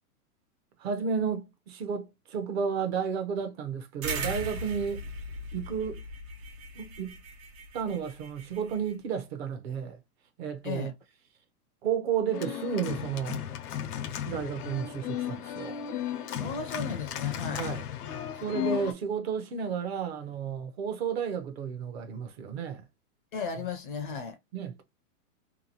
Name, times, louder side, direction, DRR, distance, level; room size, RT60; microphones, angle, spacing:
voice 1, 0.8-5.1 5.5-6.0 6.8-7.2 7.7-10.0 10.4-10.9 11.8-13.4 14.3-15.7 17.5-17.8 18.4-22.8 24.5-24.8, right 7 dB, 45° right, 0.6 m, -32 dB
sound 1, 4.0-8.9, right 2 dB, 65° right, 1.1 m, -38 dB
Organ, 12.3-18.9, left 10 dB, 90° left, 0.7 m, -35 dB
voice 2, 16.4-17.7 23.3-24.4, left 5 dB, 40° left, 0.4 m, -35 dB
2.8 x 2.2 x 2.7 m
hypercardioid pair, 150°, 45 cm